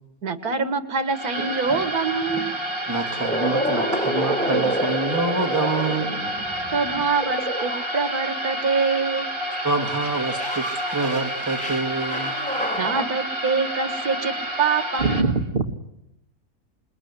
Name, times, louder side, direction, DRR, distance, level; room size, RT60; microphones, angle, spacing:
voice 1, 0.2-2.5 6.7-9.3 12.8-15.3, right 5 dB, 80° right, 10 dB, 2.1 m, -25 dB
sound 1, 1.0-15.2, right 1 dB, 55° right, 5.0 m, -29 dB
sound 2, 1.3-2.5 3.0-8.6 9.1-13.0, equal, 5° left, 3.8 m, -29 dB
voice 2, 2.9-6.1 9.6-10.7 10.9-12.3, right 3 dB, 10° right, 4 dB, 2.0 m, -26 dB
voice 3, 15.0-15.7, right 4 dB, 40° right, 4 dB, 1.8 m, -22 dB
28.0 x 21.0 x 9.8 m, 0.89 s
omnidirectional pair, 1.6 m